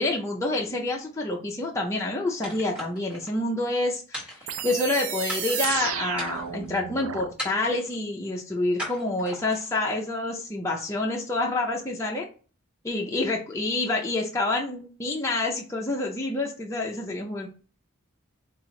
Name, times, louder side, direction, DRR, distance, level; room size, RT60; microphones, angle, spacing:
voice 1, 0.0-12.3 12.8-17.5, left 2 dB, 15° left, -2 dB, 0.4 m, -28 dB
sound 1, 2.4-3.3 4.1-4.9 5.3-5.7 6.1-6.7 7.4-7.9 8.8-9.7, equal, 5° right, 1.2 m, -38 dB
sound 2, 4.5-7.3, right 9 dB, 80° right, 0.4 m, -32 dB
4.8 x 2.0 x 3.6 m, 0.38 s
head